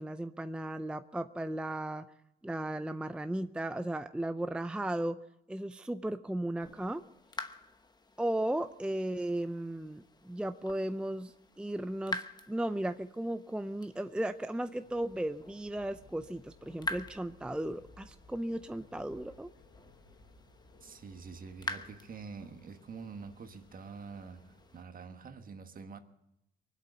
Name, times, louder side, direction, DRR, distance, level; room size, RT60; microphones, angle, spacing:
voice 1, 0.0-2.1 2.4-5.2 5.5-7.1 8.2-19.5, right 1 dB, 5° right, 0.5 m, -35 dB
sound 1, 6.6-24.8, left 2 dB, 20° left, 1.0 m, -47 dB
sound 2, 14.8-24.8, left 3 dB, 85° left, 3.3 m, -60 dB
voice 2, 20.8-26.0, right 5 dB, 45° right, 1.5 m, -46 dB
23.5 x 8.2 x 6.8 m
cardioid pair, 90°, 20 cm